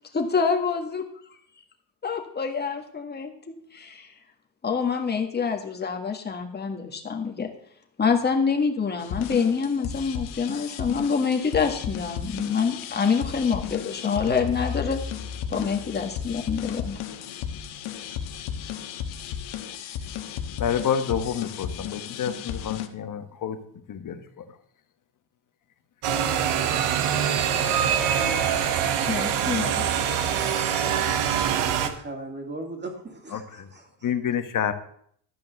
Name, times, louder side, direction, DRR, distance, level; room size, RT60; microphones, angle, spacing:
voice 1, 0.1-1.1 2.0-4.1 4.6-7.5 8.0-15.0 15.5-17.0 29.1-30.1, left 5 dB, 20° left, 3 dB, 1.7 m, -26 dB
sound 1, 9.0-22.9, left 8 dB, 75° left, 1.3 m, -34 dB
voice 2, 20.6-23.6 23.9-24.4 33.3-33.7 34.0-34.7, left 8 dB, 40° left, 8 dB, 1.3 m, -28 dB
sound 2, 26.0-31.9, right 8 dB, 85° right, 1.4 m, -24 dB
voice 3, 31.6-34.1, right 2 dB, 20° right, 3 dB, 2.6 m, -38 dB
12.5 x 5.3 x 8.0 m, 0.63 s
cardioid pair, 135°, 50 cm